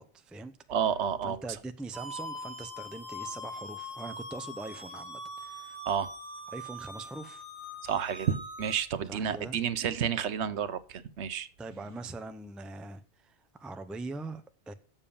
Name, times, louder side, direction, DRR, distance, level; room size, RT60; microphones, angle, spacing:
voice 1, 0.0-0.5 1.2-5.8 6.5-7.4 9.1-9.6 11.6-14.7, right 2 dB, ahead, 0.4 m, -42 dB
voice 2, 0.7-1.4 5.9-6.1 7.8-11.5, right 8 dB, 75° right, 1.0 m, -30 dB
sound 1, 1.9-8.8, left 1 dB, 60° left, 3.1 m, -42 dB
7.3 x 7.2 x 6.8 m
omnidirectional pair, 1.2 m